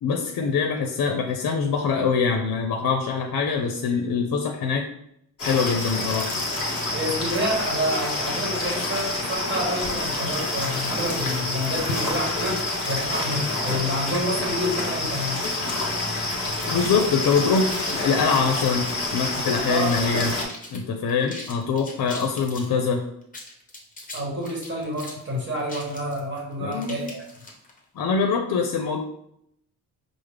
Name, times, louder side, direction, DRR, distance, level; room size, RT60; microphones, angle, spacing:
voice 1, 0.0-4.9 5.4-6.3 16.7-18.9 19.1-20.3 20.7-23.0 26.6-27.1 28.0-29.0, left 5 dB, 65° left, 3 dB, 0.5 m, -24 dB
sound 1, 5.4-20.4, left 2 dB, 40° left, 1.2 m, -27 dB
voice 2, 6.9-15.4 19.7-20.3 24.1-27.2, equal, 30° right, -2 dB, 1.2 m, -28 dB
sound 2, 17.7-20.2 20.5-20.8 21.1-22.7 23.2-27.8, left 2 dB, 25° left, 0.9 m, -41 dB
4.9 x 2.1 x 3.3 m, 0.73 s
cardioid pair, 120°, 36 cm